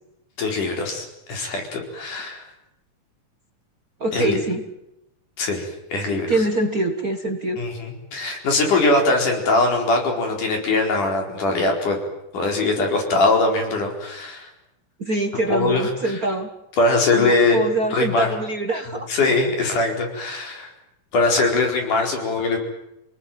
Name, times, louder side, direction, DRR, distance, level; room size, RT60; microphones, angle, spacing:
voice 1, 0.4-2.4 4.1-4.4 5.4-6.4 7.6-12.0 12.3-14.5 15.5-15.9 16.8-17.6 17.9-18.3 19.1-20.7 21.1-22.6, left 2 dB, 85° left, 2 dB, 6.0 m, -21 dB
voice 2, 4.0-4.6 6.3-7.6 15.0-16.5 17.1-19.1 19.6-19.7, right 2 dB, 45° right, 6 dB, 1.3 m, -24 dB
28.5 x 19.0 x 9.2 m, 0.88 s
omnidirectional pair, 3.5 m